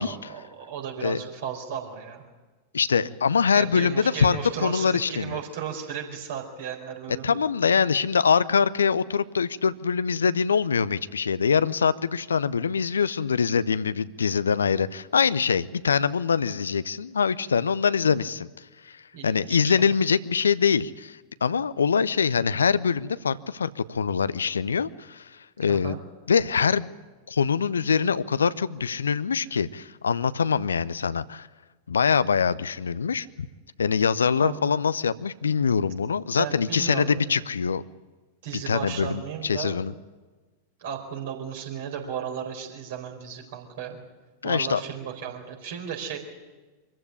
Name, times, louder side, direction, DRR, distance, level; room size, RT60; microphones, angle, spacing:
voice 1, 0.0-2.2 3.5-7.3 19.1-19.9 25.7-26.0 34.4-34.7 36.4-37.1 38.4-39.8 40.8-44.0 44.4-46.2, right 8 dB, 55° right, 3 dB, 4.4 m, -35 dB
voice 2, 2.7-5.4 7.2-26.0 26.3-26.9 27.3-31.5 31.9-33.3 33.8-37.8 38.5-39.9 44.4-44.8, left 6 dB, 70° left, 16 dB, 0.6 m, -24 dB
24.0 x 15.0 x 9.9 m, 1.3 s
figure-of-eight pair, 90°, 0 cm